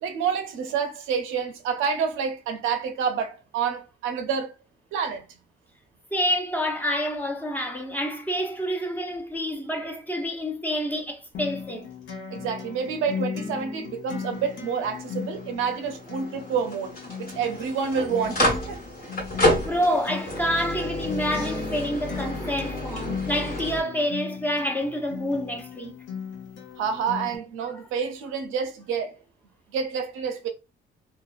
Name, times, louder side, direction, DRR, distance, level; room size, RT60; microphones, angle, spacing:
voice 1, 0.0-4.5 4.9-5.2 12.3-18.8 26.8-29.1 29.7-30.5, right 6 dB, 85° right, 0.6 m, -28 dB
voice 2, 6.1-11.9 19.5-25.9, equal, 10° left, 0.6 m, -28 dB
Acoustic guitar, 11.3-27.4, left 6 dB, 70° left, 0.7 m, -37 dB
sound 1, 14.1-23.8, left 1 dB, 45° left, 1.2 m, -30 dB
2.6 x 2.1 x 2.3 m
cardioid pair, 90°, 20 cm